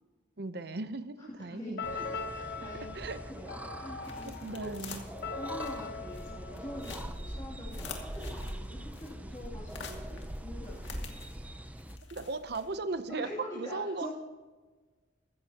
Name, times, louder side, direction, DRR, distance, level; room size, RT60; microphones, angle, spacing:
voice 1, 0.4-1.9 2.7-3.2 4.2-5.0 12.1-13.3 13.5-14.1, right 3 dB, 60° right, 12 dB, 0.7 m, -37 dB
voice 2, 1.5-4.9 5.3-11.1 13.1-14.1, left 1 dB, 25° left, -7 dB, 2.8 m, -45 dB
sound 1, 1.8-7.5, left 4 dB, 55° left, 0.9 m, -41 dB
sound 2, 1.8-12.0, right 1 dB, 10° right, 0.5 m, -42 dB
sound 3, 2.0-13.1, left 4 dB, 75° left, 2.0 m, -50 dB
15.0 x 14.5 x 2.9 m, 1.3 s
head